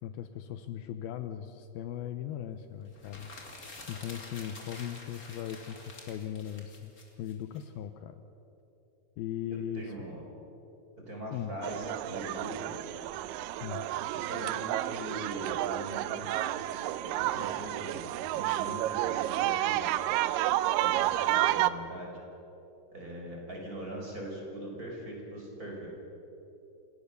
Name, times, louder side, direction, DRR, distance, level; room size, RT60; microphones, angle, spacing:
voice 1, 0.0-3.3 3.9-6.9 7.2-8.2 9.2-9.9 11.3-11.5 13.6-13.9, left 10 dB, 75° left, 9 dB, 2.5 m, -38 dB
sound 1, 2.9-7.6, left 2 dB, 25° left, 2.4 m, -48 dB
voice 2, 9.7-10.2 11.1-12.8 14.1-16.3 17.0-18.1 18.3-19.9 20.8-22.2 22.9-25.9, right 1 dB, 20° right, -1 dB, 4.6 m, -41 dB
sound 2, 11.6-21.7, right 14 dB, 90° right, 1.9 m, -30 dB
28.5 x 17.0 x 6.7 m, 3.0 s
omnidirectional pair, 4.6 m